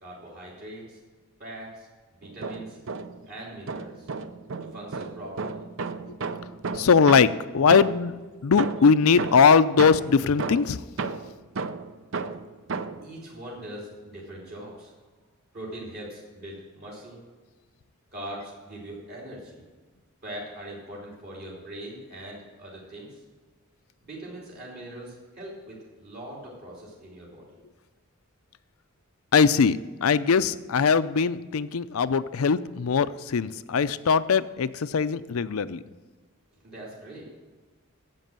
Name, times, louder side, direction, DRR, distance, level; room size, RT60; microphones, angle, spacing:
voice 1, 0.0-1.0 1.4-1.9 2.2-2.8 3.2-4.1 4.6-5.6 13.0-14.9 15.5-17.2 18.1-19.6 20.2-23.2 24.0-27.5 36.6-37.2, right 1 dB, 50° right, -5 dB, 3.1 m, -41 dB
sound 1, 2.2-3.3 3.7-8.2 8.6-13.1, right 4 dB, 65° right, 0.6 m, -34 dB
voice 2, 6.7-8.1 8.4-10.8 29.3-35.8, left 5 dB, 90° left, 13 dB, 0.5 m, -21 dB
11.0 x 7.6 x 7.5 m, 1.3 s
head